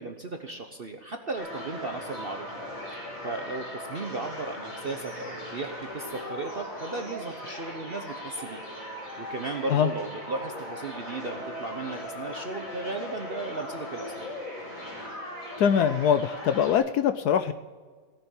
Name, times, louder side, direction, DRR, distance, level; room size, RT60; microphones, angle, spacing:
voice 1, 0.0-2.6 2.9-14.3, right 3 dB, 45° right, 5 dB, 0.8 m, -36 dB
sound 1, 1.3-16.8, left 1 dB, 90° left, 5.6 m, -39 dB
voice 2, 15.6-17.5, left 8 dB, 70° left, 11 dB, 1.0 m, -23 dB
17.0 x 6.9 x 8.7 m, 1.5 s
omnidirectional pair, 2.0 m